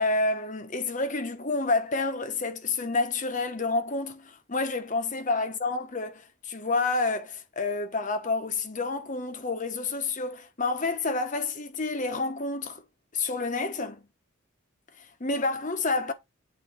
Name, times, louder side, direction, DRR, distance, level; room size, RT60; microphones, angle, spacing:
voice 1, 0.0-12.8 13.1-14.0 15.0-16.1, left 3 dB, 40° left, 1.0 m, -29 dB
8.8 x 3.8 x 3.7 m
head